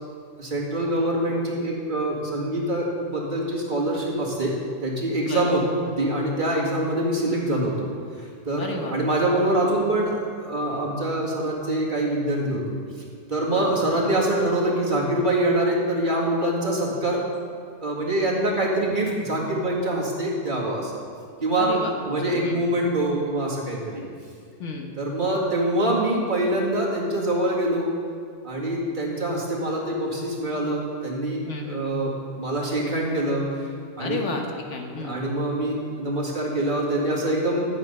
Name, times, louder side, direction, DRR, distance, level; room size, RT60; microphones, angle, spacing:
voice 1, 0.4-4.5 4.8-5.6 6.0-7.9 8.2-12.6 13.3-17.2 17.8-21.0 21.4-21.7 22.0-24.0 25.0-27.9 28.4-33.7 34.0-34.2 34.9-37.7, right 1 dB, 45° right, -4 dB, 2.3 m, -25 dB
voice 2, 8.6-9.0 13.5-13.7 21.6-21.9 22.3-22.6 24.6-24.9 31.4-31.8 34.0-35.2, left 3 dB, 85° left, 2 dB, 1.6 m, -32 dB
12.5 x 8.2 x 5.5 m, 2.2 s
omnidirectional pair, 1.2 m